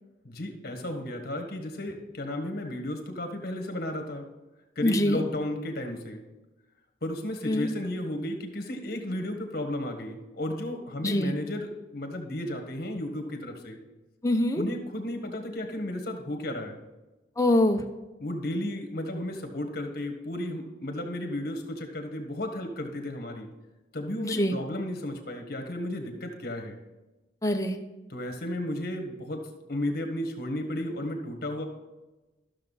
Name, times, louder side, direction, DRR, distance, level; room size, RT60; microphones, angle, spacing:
voice 1, 0.2-4.3 4.7-6.2 7.0-13.8 14.5-16.8 18.2-23.5 23.9-26.8 28.1-31.6, left 1 dB, 60° left, 4 dB, 1.5 m, -33 dB
voice 2, 4.8-5.2 7.5-7.7 11.0-11.3 14.2-14.6 17.4-17.8 24.2-24.5 27.4-27.8, left 1 dB, 20° left, 4 dB, 0.8 m, -24 dB
13.0 x 6.7 x 4.1 m, 1.1 s
head